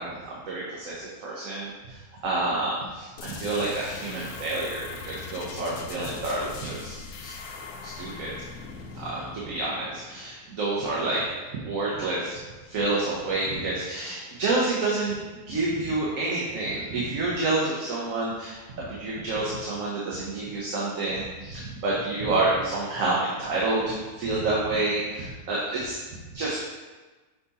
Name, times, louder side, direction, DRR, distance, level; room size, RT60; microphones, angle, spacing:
voice 1, 0.0-7.3 7.8-8.3 8.9-11.2 11.5-12.4 12.7-15.2 15.5-26.6, right 2 dB, 65° right, -5 dB, 1.3 m, -29 dB
sound 1, 3.2-10.7, left 4 dB, 80° left, 1.1 m, -41 dB
5.9 x 4.0 x 4.1 m, 1.2 s
omnidirectional pair, 1.6 m